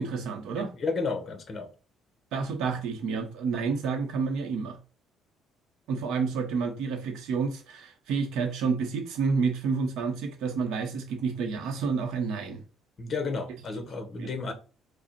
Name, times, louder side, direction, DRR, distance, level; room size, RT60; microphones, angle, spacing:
voice 1, 0.0-0.7 2.3-4.8 5.9-12.6 14.2-14.3, right 5 dB, 70° right, 0.7 m, -29 dB
voice 2, 0.5-1.7 13.0-14.5, left 4 dB, 30° left, 0.8 m, -32 dB
5.0 x 2.0 x 4.2 m
cardioid pair, 160°, 0 cm